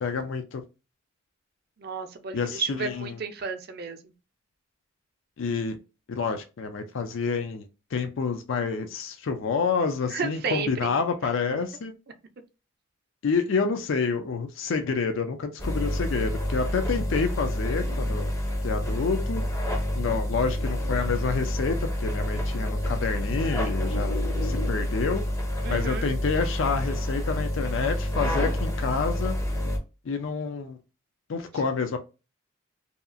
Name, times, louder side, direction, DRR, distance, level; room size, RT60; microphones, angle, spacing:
voice 1, 0.0-0.6 2.3-3.1 5.4-5.8 6.1-11.9 13.2-18.3 18.6-19.4 20.0-25.2 25.7-29.4 30.1-30.8 31.3-32.0, left 5 dB, 65° left, 0.4 m, -28 dB
voice 2, 1.8-4.0 10.1-10.9 11.2-11.3 25.6-26.1, right 5 dB, 50° right, 0.4 m, -32 dB
sound 1, 15.6-29.8, equal, 15° left, 0.5 m, -28 dB
2.7 x 2.3 x 2.4 m
head